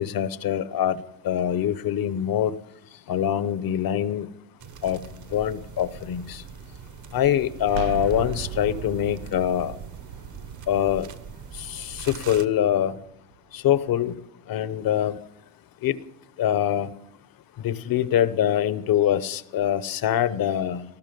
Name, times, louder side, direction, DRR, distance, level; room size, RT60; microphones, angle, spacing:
voice 1, 0.0-2.5 3.1-4.3 4.8-5.0 5.3-6.4 7.1-9.7 10.7-11.1 11.5-13.0 13.5-14.2 14.5-15.2 15.8-16.0 16.4-16.9 17.6-20.8, left 10 dB, 50° left, 15 dB, 1.0 m, -24 dB
sound 1, 4.6-12.5, right 6 dB, 40° right, 1.2 m, -43 dB
sound 2, 7.7-13.4, right 11 dB, 65° right, 0.7 m, -38 dB
19.5 x 13.5 x 5.3 m, 0.80 s
cardioid pair, 105°, 47 cm